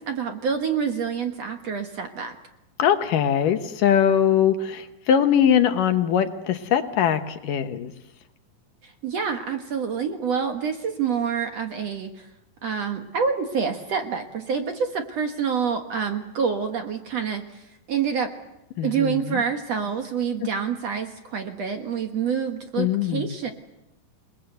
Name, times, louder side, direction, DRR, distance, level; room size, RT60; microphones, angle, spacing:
voice 1, 0.1-2.4 8.8-12.3 12.6-18.3 18.8-23.5, right 6 dB, 55° right, 5 dB, 2.1 m, -27 dB
voice 2, 2.8-7.9 18.8-19.4 22.8-23.3, left 9 dB, 70° left, 8 dB, 2.6 m, -21 dB
28.5 x 20.0 x 8.0 m, 0.90 s
omnidirectional pair, 4.3 m